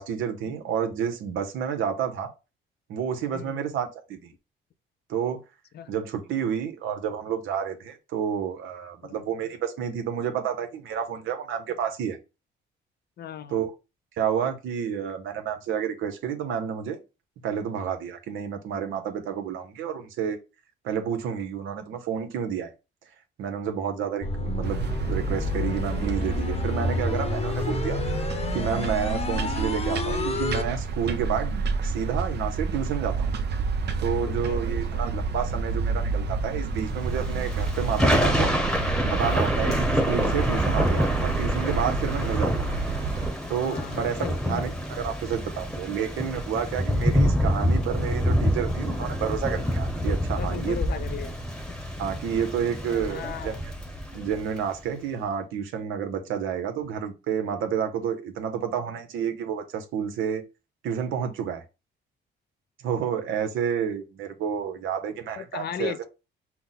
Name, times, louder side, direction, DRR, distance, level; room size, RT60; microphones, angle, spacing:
voice 1, 0.0-2.3 2.9-4.2 5.1-5.4 5.9-12.2 13.5-13.7 14.2-17.0 17.4-20.4 20.8-22.7 23.4-28.0 28.5-33.3 34.0-38.5 39.0-42.5 43.5-50.8 52.0-53.5 54.1-60.4 60.8-61.6 62.8-66.0, right 8 dB, 85° right, 0.9 m, -30 dB
voice 2, 13.2-13.7 34.3-35.0 42.1-42.5 43.6-44.7 50.4-51.3 52.9-53.6 65.4-66.1, left 9 dB, 55° left, 0.5 m, -37 dB
sound 1, 24.2-30.6, left 3 dB, 30° left, 0.8 m, -30 dB
sound 2, 24.6-43.3, right 4 dB, 55° right, 0.7 m, -29 dB
Thunder / Rain, 37.1-54.6, equal, 5° left, 1.0 m, -27 dB
5.8 x 2.1 x 4.0 m
cardioid pair, 90°, 20 cm